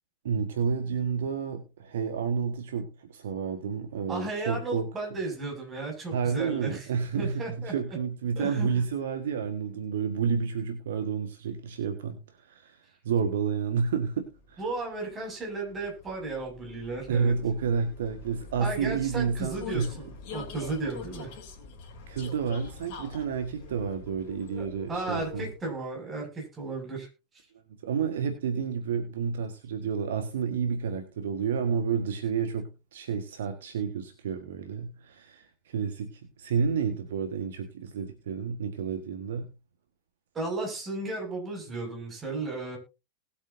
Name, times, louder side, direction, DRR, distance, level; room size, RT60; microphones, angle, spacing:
voice 1, 0.2-4.9 6.1-14.6 17.1-19.9 22.1-25.5 27.8-39.5, right 6 dB, 60° right, 7 dB, 1.6 m, -30 dB
voice 2, 4.1-6.9 7.2-8.0 8.4-8.7 14.6-17.3 18.6-21.3 24.6-27.1 40.3-42.8, right 3 dB, 20° right, 2 dB, 6.3 m, -34 dB
Vehicle, 14.1-25.7, left 5 dB, 45° left, 3.5 m, -45 dB
20.0 x 8.3 x 2.7 m, 0.29 s
figure-of-eight pair, 90°, 0 cm